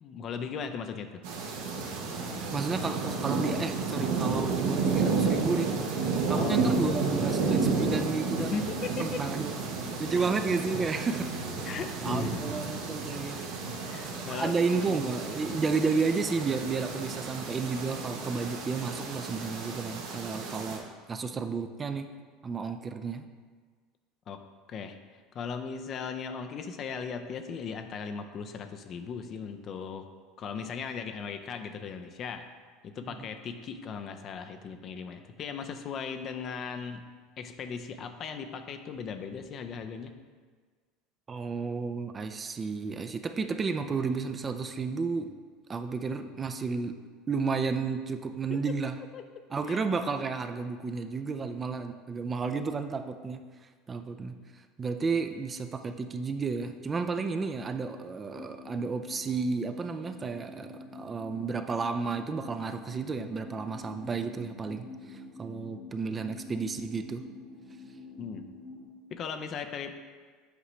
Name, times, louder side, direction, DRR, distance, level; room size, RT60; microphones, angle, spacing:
voice 1, 0.0-1.2 6.2-6.7 8.3-9.2 10.1-10.3 11.6-12.4 13.9-15.0 24.3-24.4 24.7-25.0 25.3-30.1 30.4-32.5 32.8-37.0 37.4-40.1 48.5-48.6 49.1-49.2 49.7-49.8 68.2-68.4 69.1-69.9, left 6 dB, 45° left, 8 dB, 0.5 m, -37 dB
sound 1, 1.2-20.8, right 4 dB, 75° right, 0.9 m, -31 dB
voice 2, 2.5-5.7 6.3-8.6 9.0-9.6 10.0-11.3 12.0-13.5 14.1-22.1 22.4-23.2 33.0-33.2 41.3-45.3 45.7-47.0 47.3-49.0 49.5-53.4 53.9-54.3 54.8-67.2, right 4 dB, 30° right, 8 dB, 0.5 m, -32 dB
sound 2, 58.3-68.9, left 2 dB, 80° left, 2.0 m, -47 dB
8.2 x 4.9 x 3.2 m, 1.5 s
hypercardioid pair, 80°, 0 cm